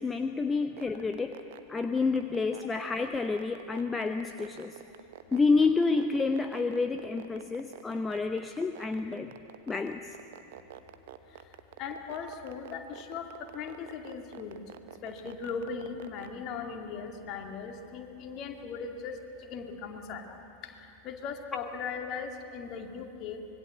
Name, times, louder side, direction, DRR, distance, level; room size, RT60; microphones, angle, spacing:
voice 1, 0.0-1.4 1.7-4.7 5.3-9.3 9.7-10.0, left 4 dB, 15° left, 7 dB, 0.8 m, -29 dB
sound 1, 0.6-16.3, right 14 dB, 55° right, 1.0 m, -47 dB
voice 2, 11.8-13.3 13.5-14.6 15.0-19.1 19.5-20.4 21.0-23.4, left 5 dB, 35° left, 3 dB, 2.4 m, -38 dB
25.0 x 22.0 x 7.6 m, 2.8 s
figure-of-eight pair, 90°, 0 cm